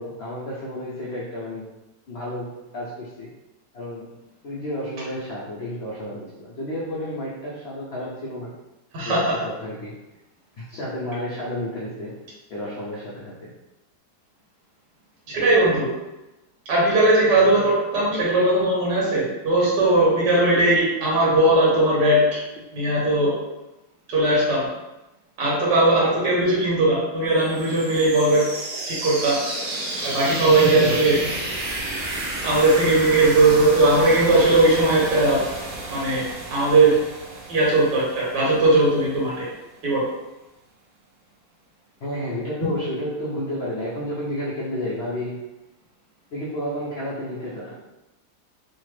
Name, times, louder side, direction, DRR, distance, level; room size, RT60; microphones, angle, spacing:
voice 1, 0.0-1.7 2.1-3.3 3.7-8.6 9.0-10.0 10.6-12.2 12.5-13.5 15.3-15.5 30.4-31.0 42.0-45.4 46.3-47.7, left 1 dB, 80° left, -6 dB, 0.5 m, -31 dB
voice 2, 8.9-9.4 15.3-15.9 16.7-22.4 22.7-23.4 24.1-24.7 25.4-28.4 28.9-29.4 30.0-31.3 32.4-35.4 35.9-36.2 36.5-37.0 37.5-39.5 39.8-40.0, right 2 dB, 85° right, -5 dB, 1.7 m, -19 dB
sound 1, 27.4-39.1, right 2 dB, 55° right, 0.8 m, -31 dB
3.3 x 2.1 x 3.1 m, 0.99 s
omnidirectional pair, 1.8 m